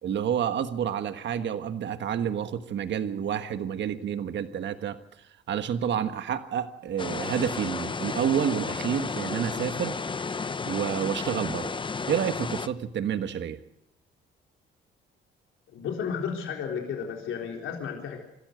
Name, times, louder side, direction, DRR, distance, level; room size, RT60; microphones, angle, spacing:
voice 1, 0.0-5.0 5.5-9.9 10.7-11.7 12.1-13.6, right 8 dB, 65° right, 1.4 m, -29 dB
sound 1, 7.0-12.7, left 4 dB, 25° left, 0.8 m, -32 dB
voice 2, 15.7-18.2, left 7 dB, 85° left, 3.8 m, -33 dB
26.0 x 13.5 x 7.7 m
cardioid pair, 90°, 20 cm